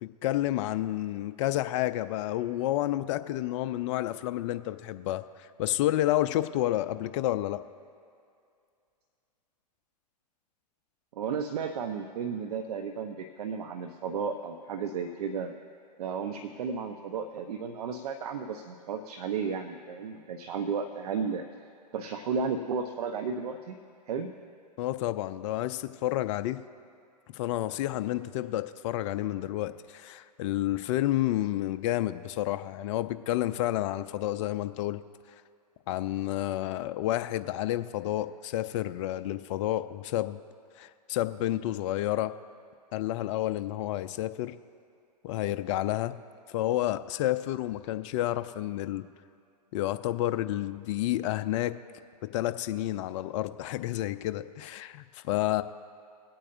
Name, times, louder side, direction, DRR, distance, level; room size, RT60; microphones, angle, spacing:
voice 1, 0.0-7.6 24.8-26.6 27.3-35.0 35.9-40.4 40.8-42.3 42.9-44.6 45.2-46.1 46.5-49.0 49.7-51.8 52.3-55.6, left 14 dB, 45° left, 11 dB, 0.6 m, -30 dB
voice 2, 11.1-15.5 16.0-21.5 21.9-23.8 24.1-24.3, right 5 dB, 65° right, 7 dB, 0.8 m, -33 dB
22.5 x 8.7 x 2.6 m, 2.4 s
hypercardioid pair, 115°, 21 cm